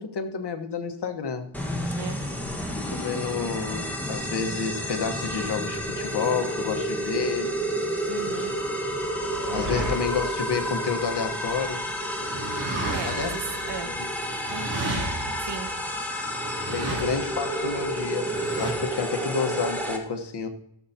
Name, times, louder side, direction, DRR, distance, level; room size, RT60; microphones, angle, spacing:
voice 1, 0.0-1.5 2.9-7.5 9.5-11.9 13.0-13.4 13.8-14.1 16.7-20.5, left 5 dB, 55° left, 6 dB, 1.3 m, -29 dB
sound 1, 1.5-20.0, equal, 5° left, 1.4 m, -30 dB
voice 2, 8.1-8.6 12.9-13.9 14.5-14.9 15.4-15.7 16.9-17.1, right 6 dB, 60° right, 6 dB, 1.4 m, -36 dB
sound 2, 8.5-11.6 12.2-18.7, right 2 dB, 30° right, 3.3 m, -34 dB
16.0 x 7.2 x 2.8 m, 0.79 s
wide cardioid pair, 115°, 48 cm